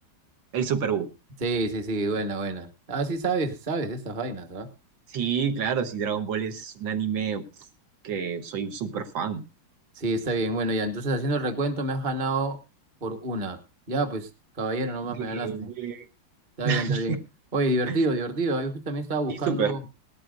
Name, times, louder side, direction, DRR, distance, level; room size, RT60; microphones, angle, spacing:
voice 1, 0.5-1.1 5.1-7.4 8.0-9.4 15.0-16.1 16.6-17.2 17.9-18.1 19.3-19.7, right 7 dB, 80° right, 7 dB, 1.9 m, -28 dB
voice 2, 1.4-4.7 9.9-12.6 13.0-13.6 13.9-14.3 14.6-15.7 16.6-17.2 17.5-19.8, right 2 dB, 30° right, 6 dB, 1.2 m, -28 dB
18.5 x 12.5 x 2.5 m, 0.26 s
omnidirectional pair, 2.1 m